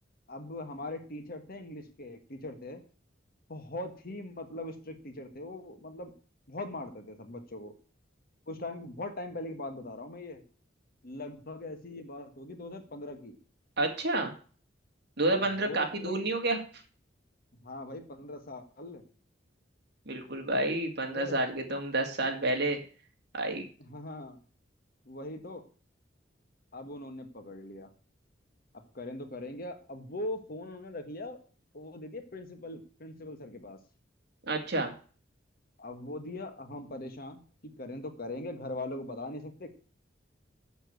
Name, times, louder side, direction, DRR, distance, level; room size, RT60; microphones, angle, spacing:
voice 1, 0.3-2.8 3.5-6.1 6.5-7.7 8.5-10.4 11.0-13.4 15.3-16.3 17.6-19.0 21.0-21.4 23.8-24.4 25.1-25.6 26.7-27.9 28.9-31.4 31.7-33.8 35.8-37.4 37.8-39.7, left 2 dB, 55° left, 6 dB, 1.7 m, -41 dB
voice 2, 13.8-14.3 15.2-16.6 20.1-22.8 23.3-23.6 34.5-34.9, right 2 dB, 60° right, 3 dB, 2.4 m, -29 dB
7.2 x 7.1 x 8.2 m, 0.40 s
head